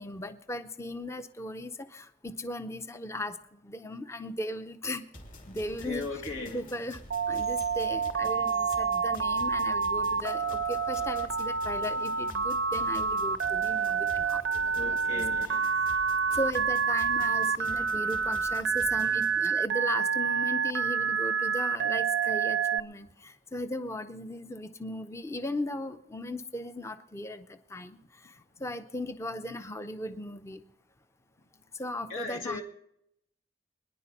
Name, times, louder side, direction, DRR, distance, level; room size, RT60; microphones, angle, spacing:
voice 1, 0.0-3.4 3.6-5.1 5.5-6.1 6.5-7.0 7.3-14.4 14.9-15.2 15.5-16.0 16.3-28.3 28.6-30.6 31.7-32.6, left 1 dB, 15° left, 0.6 m, -37 dB
sound 1, 5.1-19.5, left 1 dB, 45° left, 2.9 m, -48 dB
voice 2, 5.8-6.6 14.7-15.7 32.1-32.6, left 3 dB, 80° left, 2.1 m, -37 dB
Telephone, 7.1-22.8, right 6 dB, 70° right, 0.6 m, -28 dB
23.0 x 10.5 x 4.2 m
head